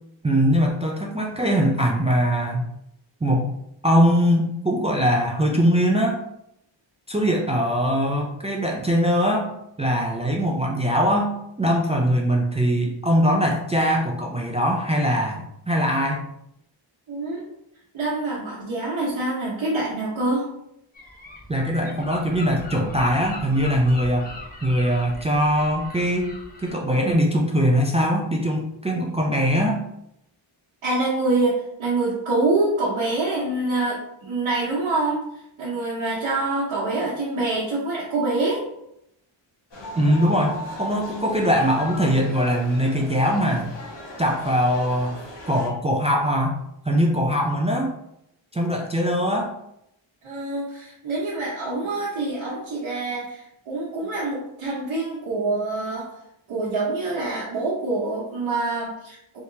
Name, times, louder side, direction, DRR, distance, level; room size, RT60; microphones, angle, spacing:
voice 1, 0.2-2.7 3.2-3.5 3.8-6.2 7.1-9.5 9.8-16.2 21.5-24.3 24.6-26.3 26.6-29.8 39.9-43.7 44.2-45.2 45.5-46.6 46.9-47.9 48.5-49.5, equal, 15° right, 0 dB, 0.3 m, -21 dB
voice 2, 17.1-17.4 17.9-20.5 30.8-35.2 35.6-38.7 50.2-56.1 56.5-59.4, right 2 dB, 80° right, -7 dB, 1.0 m, -25 dB
Gull seagull, 20.9-26.7, left 2 dB, 20° left, 0.8 m, -39 dB
sound 1, 39.7-45.7, equal, 60° left, 1.3 m, -38 dB
3.4 x 2.8 x 2.7 m, 0.79 s
wide cardioid pair, 115°, 47 cm